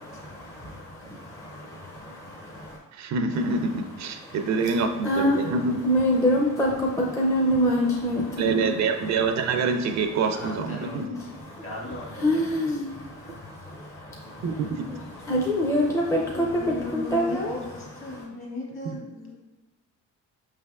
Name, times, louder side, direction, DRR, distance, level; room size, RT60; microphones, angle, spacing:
voice 1, 0.1-2.8 4.1-5.6 5.8-8.7 9.0-9.1 10.0-10.1 10.8-11.6 12.2-17.6 17.9-18.2, equal, 10° left, -2 dB, 0.5 m, -27 dB
voice 2, 2.9-5.8 8.4-11.2 14.4-14.9 18.9-19.0, right 4 dB, 65° right, 6 dB, 0.5 m, -26 dB
voice 3, 5.2-5.7 10.3-11.2 11.5-12.8 13.7-13.8 16.1-19.3, left 2 dB, 45° left, -2 dB, 1.4 m, -38 dB
5.1 x 3.3 x 2.3 m, 1.2 s
cardioid pair, 90°, 30 cm